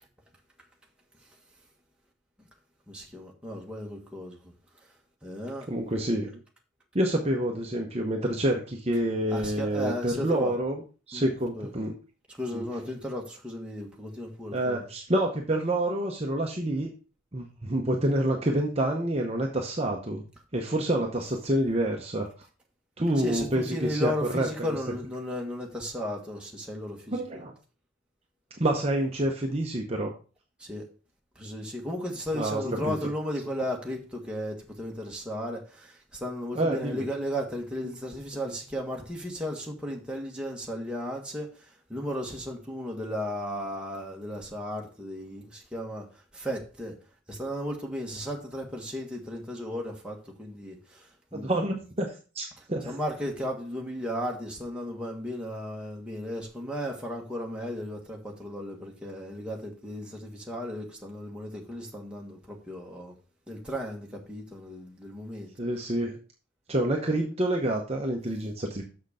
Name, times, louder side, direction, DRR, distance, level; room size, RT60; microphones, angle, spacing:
voice 1, 2.9-4.4 5.2-5.7 9.3-10.5 11.1-11.3 11.5-11.7 12.3-14.8 23.2-27.4 30.6-30.8 31.4-41.5 41.9-46.1 46.3-46.9 47.3-51.0 51.3-51.6 52.8-63.1 63.5-65.5, equal, 5° right, 1.5 m, -35 dB
voice 2, 5.7-6.4 6.9-10.8 11.1-11.9 12.5-12.6 14.5-16.9 17.3-20.2 20.5-22.3 23.0-24.5 27.1-27.5 28.6-30.1 32.3-33.0 36.5-37.1 51.3-52.9 65.6-66.2 66.7-68.8, right 1 dB, 30° right, 0.8 m, -28 dB
6.6 x 6.4 x 4.9 m
head